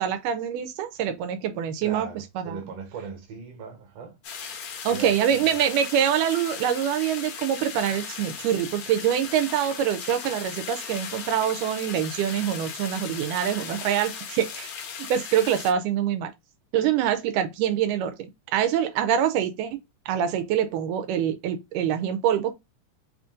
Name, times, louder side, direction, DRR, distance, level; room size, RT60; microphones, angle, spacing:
voice 1, 0.0-2.1 2.4-2.6 4.9-14.7 15.1-16.3 16.7-19.8 20.1-22.5, right 9 dB, 85° right, 2.1 m, -25 dB
voice 2, 1.8-4.2 4.9-5.5, right 5 dB, 60° right, 2.0 m, -38 dB
sound 1, 4.2-15.7, left 6 dB, 65° left, 1.7 m, -37 dB
5.0 x 2.5 x 3.6 m
omnidirectional pair, 3.7 m